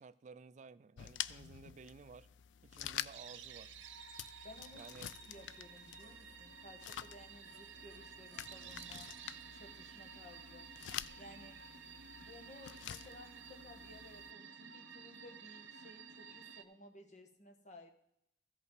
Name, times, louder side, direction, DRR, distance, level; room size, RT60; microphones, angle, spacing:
voice 1, 0.0-2.3 2.6-3.7 4.7-5.1, right 4 dB, 40° right, 0.4 m, -55 dB
sound 1, 1.0-14.3, left 11 dB, 75° left, 0.3 m, -48 dB
sound 2, 3.1-16.6, right 6 dB, 90° right, 0.8 m, -53 dB
voice 2, 4.4-4.8 5.3-9.1 9.5-10.7 11.2-11.6 12.2-17.9, left 1 dB, 40° left, 1.3 m, -57 dB
14.5 x 5.5 x 4.7 m
head